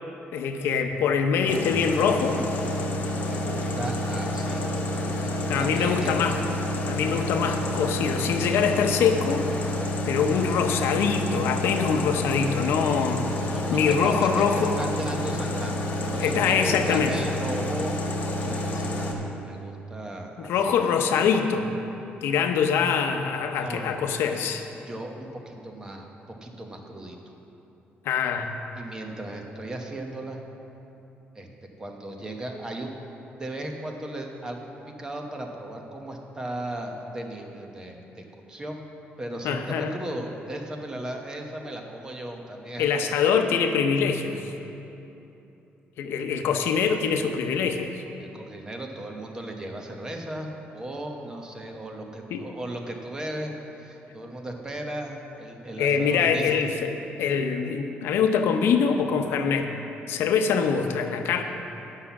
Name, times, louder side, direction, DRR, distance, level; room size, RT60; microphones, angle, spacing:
voice 1, 0.3-2.4 5.5-6.4 6.8-9.5 10.1-14.7 16.2-17.1 20.4-21.7 22.2-24.6 28.0-28.5 39.4-39.9 42.8-44.4 46.0-48.0 52.3-52.4 55.8-56.9 57.2-59.7 60.1-61.4, left 6 dB, 85° left, 6 dB, 0.7 m, -24 dB
sound 1, 1.5-19.1, left 1 dB, 50° left, 1.3 m, -29 dB
voice 2, 3.3-4.6 5.2-6.1 13.5-17.9 18.4-20.8 23.6-23.9 24.9-26.1 26.4-27.2 28.7-30.4 31.3-31.5 31.8-32.9 33.4-34.7 35.0-38.8 39.2-43.2 48.2-50.5 50.7-53.5 53.8-56.6, right 1 dB, 20° right, 2 dB, 0.9 m, -36 dB
9.8 x 5.7 x 7.1 m, 3.0 s
cardioid pair, 150°, 4 cm